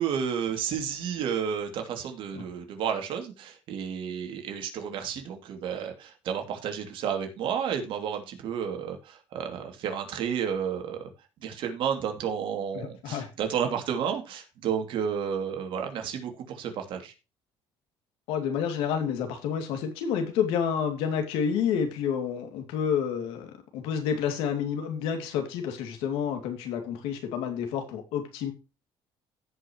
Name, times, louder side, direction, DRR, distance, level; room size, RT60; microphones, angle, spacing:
voice 1, 0.0-11.1 11.4-17.1, right 8 dB, 65° right, 4 dB, 2.6 m, -31 dB
voice 2, 12.7-13.3 18.3-28.5, left 7 dB, 90° left, 6 dB, 2.5 m, -29 dB
16.0 x 5.6 x 3.0 m, 0.29 s
cardioid pair, 115°, 9 cm